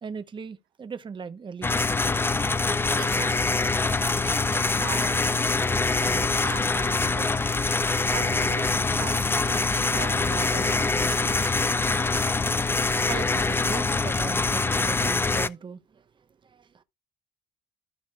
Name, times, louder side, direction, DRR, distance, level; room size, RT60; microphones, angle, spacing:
voice 1, 0.0-1.9 13.0-16.0 16.4-16.8, right 5 dB, 30° right, 0.9 m, -38 dB
sound 1, 1.6-15.5, left 3 dB, 15° left, 0.4 m, -24 dB
voice 2, 3.0-3.6 3.9-11.6, right 12 dB, 85° right, 1.1 m, -40 dB
15.0 x 5.1 x 2.3 m
cardioid pair, 110°, 17 cm